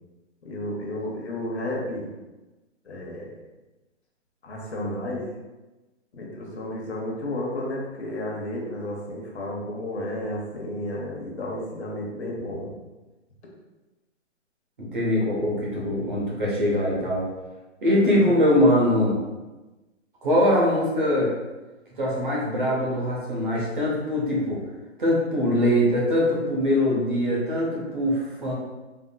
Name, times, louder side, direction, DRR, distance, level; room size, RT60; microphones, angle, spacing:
voice 1, 0.4-2.1 2.9-3.3 4.4-5.3 6.1-12.7 17.9-18.3, left 1 dB, 60° left, -2 dB, 0.9 m, -32 dB
voice 2, 14.8-17.3 17.8-19.2 20.2-21.3 22.0-24.6 25.0-28.5, left 1 dB, 40° right, -4 dB, 0.8 m, -22 dB
3.6 x 2.6 x 2.2 m, 1.1 s
hypercardioid pair, 180°, 37 cm